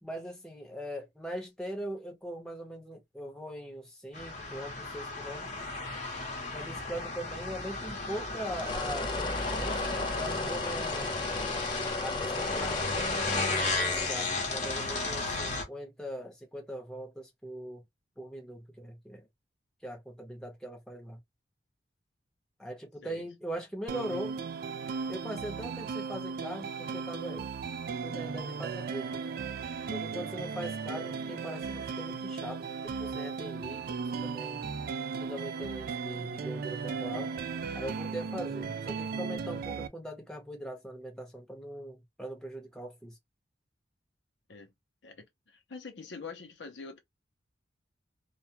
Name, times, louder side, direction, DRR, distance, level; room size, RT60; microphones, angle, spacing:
voice 1, 0.0-5.5 6.5-11.1 12.0-17.8 18.2-19.3 19.8-21.2 22.6-24.4 25.1-27.5 28.0-29.2 29.9-34.7 35.2-37.3 37.7-43.2, equal, 5° left, 0.9 m, -41 dB
sound 1, 4.1-15.6, left 3 dB, 40° left, 0.9 m, -34 dB
sound 2, 8.6-14.1, left 3 dB, 25° left, 0.4 m, -36 dB
sound 3, 23.9-39.9, right 5 dB, 55° right, 0.4 m, -36 dB
voice 2, 45.0-47.0, left 4 dB, 80° left, 0.6 m, -45 dB
2.3 x 2.2 x 2.7 m
head